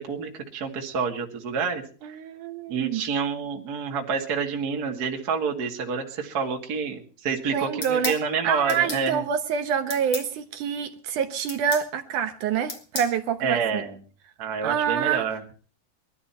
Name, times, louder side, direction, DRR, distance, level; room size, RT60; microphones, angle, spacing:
voice 1, 0.0-1.8 2.1-2.2 2.7-9.2 13.4-14.0 14.4-15.4, right 6 dB, 30° right, 1 dB, 2.0 m, -28 dB
voice 2, 2.0-3.0 7.5-8.1 8.4-13.8 14.6-15.3, right 8 dB, 70° right, 8 dB, 2.2 m, -26 dB
sound 1, 7.8-8.2 8.7-9.0 9.9-10.3 11.5-11.9 12.7-13.1, left 3 dB, 35° left, 2.2 m, -33 dB
22.0 x 12.5 x 4.4 m, 0.39 s
omnidirectional pair, 4.2 m